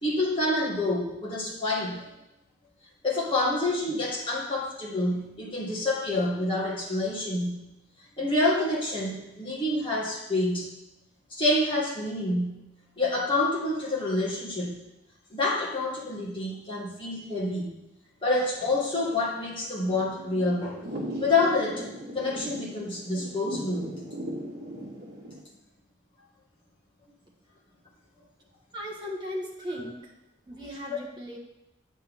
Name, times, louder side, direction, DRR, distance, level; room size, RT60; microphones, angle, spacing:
voice 1, 0.0-2.1 3.0-7.6 8.2-10.7 11.3-12.6 13.0-14.8 15.3-17.7 18.2-20.8 21.2-21.9 22.1-23.9, left 2 dB, 25° left, -5 dB, 2.1 m, -27 dB
Thunder / Rain, 18.5-25.4, equal, 55° right, 2.0 m, -39 dB
voice 2, 28.7-30.1 30.5-31.4, equal, 25° right, -2 dB, 1.6 m, -37 dB
8.4 x 8.2 x 3.8 m, 0.89 s
head